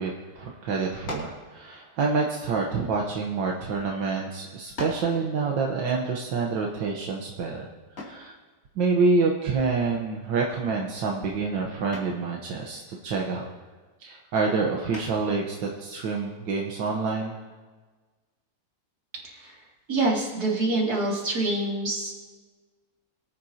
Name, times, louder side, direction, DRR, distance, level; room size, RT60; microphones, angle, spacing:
voice 1, 0.0-7.7 8.0-8.3 8.8-13.5 14.0-17.4, right 4 dB, 85° right, 0 dB, 1.8 m, -27 dB
sound 1, 1.0-1.5 2.4-3.6 4.2-4.3 4.8-5.2 8.0-8.3 10.2-10.6 11.0-11.3 11.9-12.3 14.9-15.4, left 2 dB, 45° left, 3.0 m, -39 dB
voice 2, 19.9-22.3, right 2 dB, 55° right, -3 dB, 3.0 m, -26 dB
23.0 x 9.2 x 2.8 m, 1.4 s
omnidirectional pair, 2.0 m